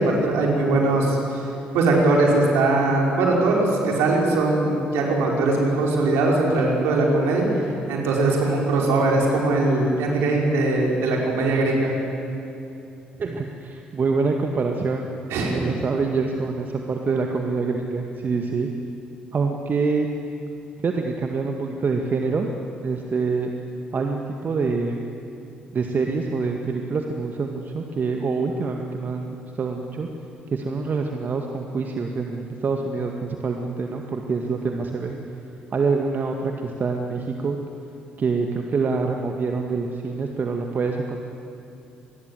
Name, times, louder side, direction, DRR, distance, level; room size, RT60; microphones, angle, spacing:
voice 1, 0.0-1.4 1.7-7.5 7.9-11.9 15.3-15.5, right 2 dB, 65° right, -1 dB, 5.3 m, -20 dB
voice 2, 13.2-15.1 15.5-18.7 19.3-20.1 20.8-22.5 22.8-23.5 23.9-25.0 25.7-30.1 30.5-35.2 35.7-37.6 38.2-41.2, right 4 dB, 45° right, 3 dB, 2.0 m, -25 dB
26.0 x 20.5 x 8.1 m, 2.7 s
hypercardioid pair, 45°, 4 cm